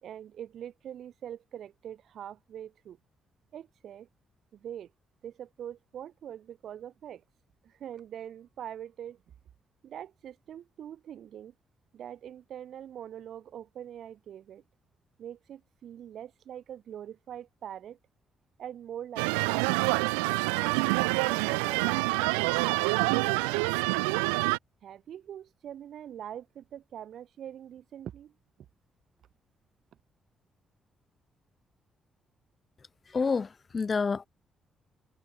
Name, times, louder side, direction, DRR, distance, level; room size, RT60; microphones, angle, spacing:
voice 1, 0.0-3.0 3.5-4.1 4.5-4.9 5.2-7.2 7.6-9.2 9.8-11.5 11.9-14.6 15.2-18.0 18.6-19.7 20.6-20.9 21.3-24.2 24.8-28.3, right 10 dB, 65° right, 3.0 m, -43 dB
sound 1, 19.2-24.6, right 39 dB, 90° right, 1.0 m, -27 dB
voice 2, 33.1-34.3, left 5 dB, 40° left, 1.1 m, -28 dB
hypercardioid pair, 45°, 0 cm